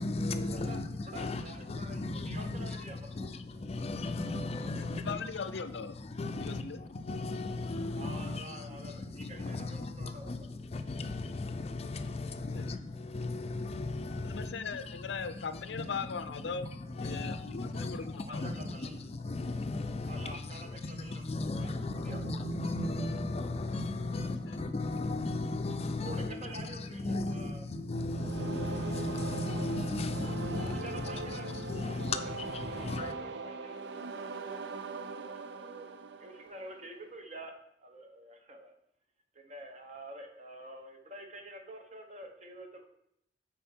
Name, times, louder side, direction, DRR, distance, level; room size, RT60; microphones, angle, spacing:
voice 1, 0.0-5.2 6.0-16.0 16.4-33.1, left 2 dB, 35° left, 0.5 m, -36 dB
voice 2, 1.0-3.3 7.9-10.3 18.3-19.0 20.1-21.7 22.0-22.2 26.0-27.6 30.1-30.3 30.6-34.1 35.1-37.5 37.8-38.7 39.3-42.8, right 1 dB, 40° right, 1.1 m, -48 dB
voice 3, 4.9-5.9 6.4-6.8 12.5-12.7 14.2-16.7 17.0-18.6 24.1-24.6, left 5 dB, 85° left, 0.5 m, -39 dB
sound 1, 28.1-37.0, right 3 dB, 80° right, 0.5 m, -41 dB
9.2 x 4.4 x 4.4 m
head